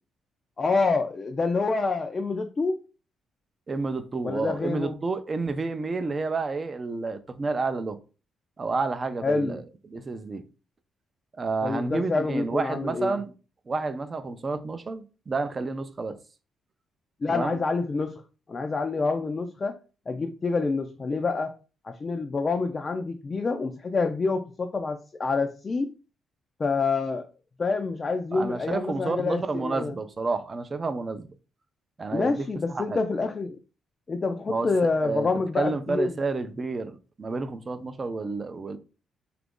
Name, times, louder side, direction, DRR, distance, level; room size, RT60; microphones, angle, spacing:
voice 1, 0.6-2.8 4.2-5.0 9.2-9.6 11.6-13.2 17.2-18.1 18.5-19.8 20.1-21.5 21.8-25.9 26.6-27.3 27.6-30.0 32.1-33.6 34.1-36.1, left 3 dB, 35° left, 0.4 m, -27 dB
voice 2, 3.7-8.0 8.6-10.4 11.3-13.3 13.7-16.1 17.3-17.6 28.3-31.3 32.0-33.0 34.5-34.7 35.0-35.3 35.6-38.8, right 3 dB, 35° right, 0.5 m, -30 dB
2.9 x 2.5 x 3.6 m
cardioid pair, 90°, 0 cm